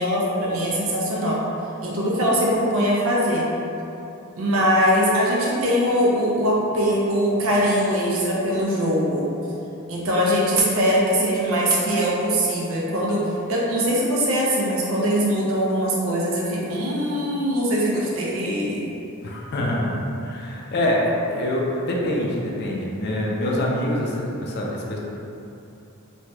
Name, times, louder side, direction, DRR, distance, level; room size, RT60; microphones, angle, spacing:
voice 1, 0.0-1.4 1.8-3.5 4.4-9.3 9.9-13.2 13.5-19.0, equal, 65° right, -5 dB, 0.6 m, -22 dB
voice 2, 19.2-19.9 20.2-25.0, left 1 dB, 50° left, -2 dB, 0.4 m, -25 dB
3.1 x 2.7 x 2.2 m, 2.8 s
head